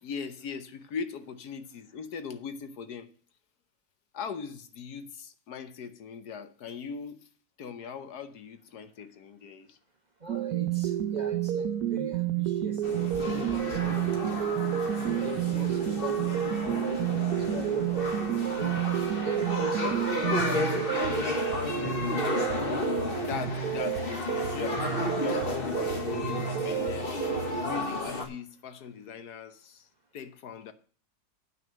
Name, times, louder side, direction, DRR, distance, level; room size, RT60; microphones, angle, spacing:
voice 1, 0.0-3.1 4.1-7.3 7.6-9.8 18.4-18.5 23.2-27.2 27.6-29.9 30.1-30.7, left 6 dB, 80° left, 1.5 m, -40 dB
voice 2, 10.2-12.9 13.2-14.5 15.0-16.7 17.4-18.2 18.5-20.5 21.1-21.5, right 3 dB, 30° right, 1.5 m, -40 dB
sound 1, 10.3-27.6, right 11 dB, 75° right, 1.2 m, -30 dB
sound 2, 12.8-28.2, left 2 dB, 35° left, 1.7 m, -32 dB
9.1 x 6.2 x 7.4 m
omnidirectional pair, 1.7 m